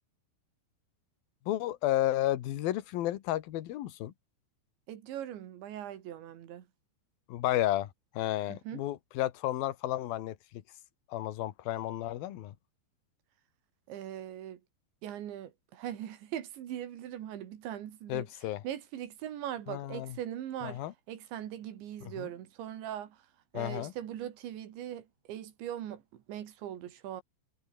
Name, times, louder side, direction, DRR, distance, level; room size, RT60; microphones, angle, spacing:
voice 1, 1.5-4.1 7.3-7.9 8.1-10.4 11.1-12.5 18.1-18.6 19.7-20.2 20.6-20.9 22.2-22.3 23.5-23.9, left 14 dB, 65° left, 2.9 m, -32 dB
voice 2, 4.9-6.7 8.5-8.8 13.9-14.6 15.0-18.3 18.6-20.8 21.1-23.2 23.5-27.2, right 11 dB, 80° right, 4.5 m, -40 dB
omnidirectional pair, 5.2 m